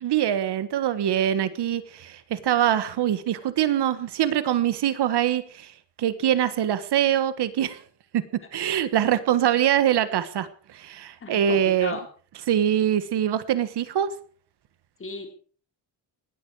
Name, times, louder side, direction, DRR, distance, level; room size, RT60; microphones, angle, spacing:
voice 1, 0.0-7.8 8.1-8.2 8.5-12.0 12.5-14.1, right 10 dB, 65° right, 13 dB, 1.4 m, -24 dB
voice 2, 11.2-12.1 15.0-15.3, left 3 dB, 30° left, 4 dB, 3.8 m, -35 dB
19.5 x 13.5 x 4.8 m, 0.43 s
cardioid pair, 140°, 44 cm